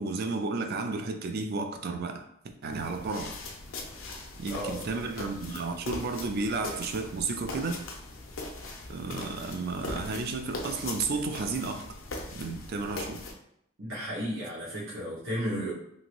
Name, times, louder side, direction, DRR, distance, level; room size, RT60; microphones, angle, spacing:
voice 1, 0.0-2.3 2.6-3.4 4.4-7.8 8.9-11.9 12.3-13.2, right 3 dB, 50° right, 6 dB, 0.4 m, -32 dB
sound 1, 2.7-13.3, left 2 dB, 80° left, 0.6 m, -40 dB
voice 2, 4.5-4.8 13.8-15.7, equal, 70° right, -8 dB, 1.1 m, -34 dB
2.9 x 2.6 x 2.9 m, 0.73 s
head